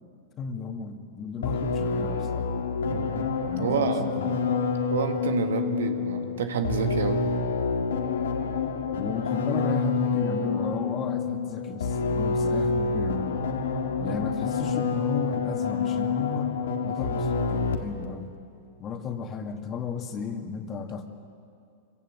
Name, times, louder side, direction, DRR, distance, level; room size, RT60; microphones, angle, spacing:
voice 1, 0.4-2.5 3.4-4.3 8.9-13.3 14.0-16.5 16.8-18.3 18.8-21.1, left 5 dB, 35° left, 5 dB, 2.1 m, -34 dB
sound 1, 1.4-18.1, left 4 dB, 85° left, 1.7 m, -28 dB
voice 2, 2.9-3.2 3.6-4.1 4.9-7.2, right 7 dB, 80° right, 6 dB, 1.8 m, -29 dB
25.5 x 16.5 x 8.1 m, 2.5 s
hypercardioid pair, 115°, 0 cm